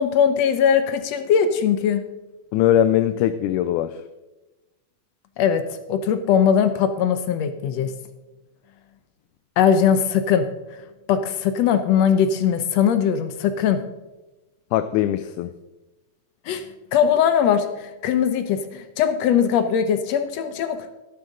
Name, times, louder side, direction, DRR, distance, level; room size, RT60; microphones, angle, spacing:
voice 1, 0.0-2.0 5.4-7.9 9.6-10.5 11.1-13.8 16.5-20.9, left 8 dB, 70° left, 10 dB, 1.8 m, -20 dB
voice 2, 2.5-4.0 14.7-15.5, left 11 dB, 90° left, 11 dB, 2.0 m, -20 dB
13.5 x 12.0 x 3.9 m, 1.1 s
omnidirectional pair, 3.5 m